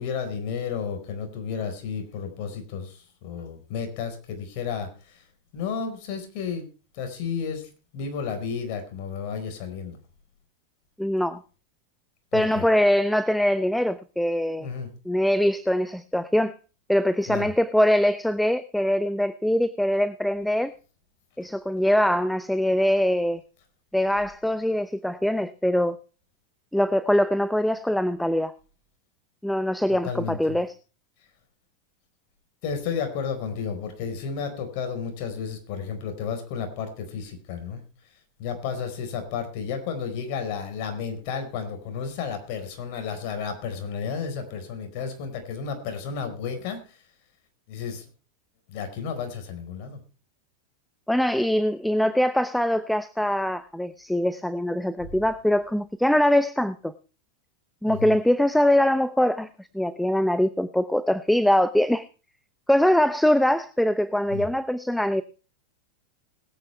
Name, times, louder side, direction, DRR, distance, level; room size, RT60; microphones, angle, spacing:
voice 1, 0.0-4.9 5.1-5.2 5.5-6.7 6.9-10.0 12.3-12.7 14.6-14.9 17.3-17.5 29.9-30.6 32.6-37.8 38.4-46.8 47.7-48.1 48.7-50.0 55.0-55.1 57.9-58.1 64.3-64.5, left 6 dB, 55° left, 4.5 m, -32 dB
voice 2, 11.0-11.4 12.3-14.7 15.1-16.5 16.9-20.7 21.4-23.4 23.9-26.0 26.7-28.5 29.4-30.7 51.1-56.9 57.8-62.1 62.7-65.2, left 1 dB, ahead, 0.7 m, -23 dB
21.0 x 9.1 x 3.3 m
hypercardioid pair, 115°, 0 cm